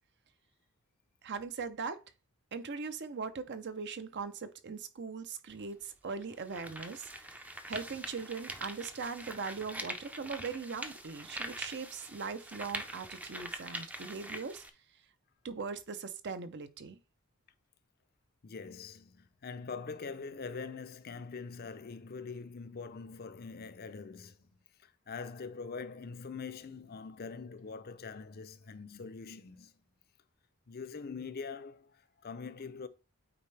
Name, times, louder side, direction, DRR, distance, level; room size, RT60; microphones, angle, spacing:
voice 1, 1.2-2.0 2.5-7.1 7.7-14.6 15.4-17.0, right 5 dB, 50° right, 0.6 m, -40 dB
sound 1, 5.5-5.6 6.2-14.7, right 1 dB, 5° right, 0.5 m, -43 dB
voice 2, 18.4-24.4 24.8-29.7 30.7-32.9, left 5 dB, 45° left, 0.5 m, -43 dB
8.7 x 4.3 x 3.3 m
head